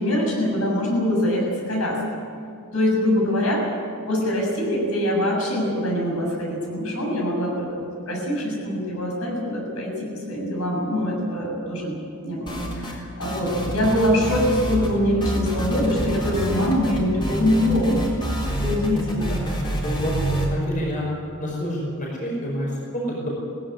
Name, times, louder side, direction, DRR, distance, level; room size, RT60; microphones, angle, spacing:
voice 1, 0.0-2.0 2.7-3.6 4.1-12.0 12.2-18.1 18.5-19.3, left 1 dB, 70° left, -1 dB, 7.1 m, -23 dB
sound 1, 12.5-13.0 13.2-14.9 15.2-20.5, right 1 dB, 20° left, 4.0 m, -27 dB
voice 2, 19.3-21.0 21.4-23.3, equal, 35° left, -3 dB, 5.3 m, -29 dB
19.0 x 16.0 x 9.8 m, 2.4 s
head